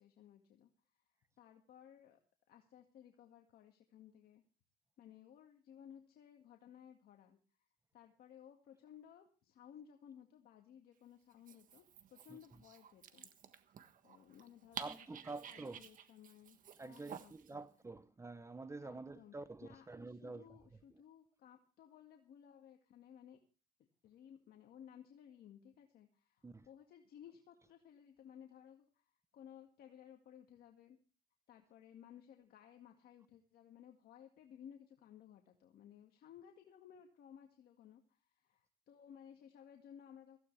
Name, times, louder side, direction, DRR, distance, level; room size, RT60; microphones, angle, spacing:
voice 1, 0.0-2.2 2.5-4.4 5.0-7.7 7.9-11.8 12.1-13.3 13.8-17.7 18.8-19.3 19.6-23.4 24.0-31.0 31.5-40.4, left 9 dB, 65° left, 2.0 m, -59 dB
Dog, 11.3-17.5, right 8 dB, 50° right, 1.5 m, -52 dB
voice 2, 14.8-15.8 16.8-20.6 26.4-26.7, right 3 dB, 15° right, 0.8 m, -48 dB
17.0 x 15.5 x 3.4 m
cardioid pair, 110°, 17 cm